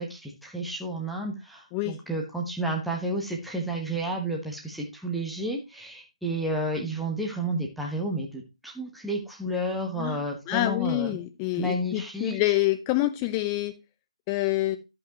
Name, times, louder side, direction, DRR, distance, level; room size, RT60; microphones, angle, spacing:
voice 1, 0.0-11.2 11.6-12.4, right 1 dB, ahead, -1 dB, 1.2 m, -31 dB
voice 2, 10.5-13.7 14.3-14.8, left 17 dB, 15° left, 8 dB, 0.7 m, -27 dB
13.5 x 5.5 x 3.0 m, 0.25 s
figure-of-eight pair, 150°, 4 cm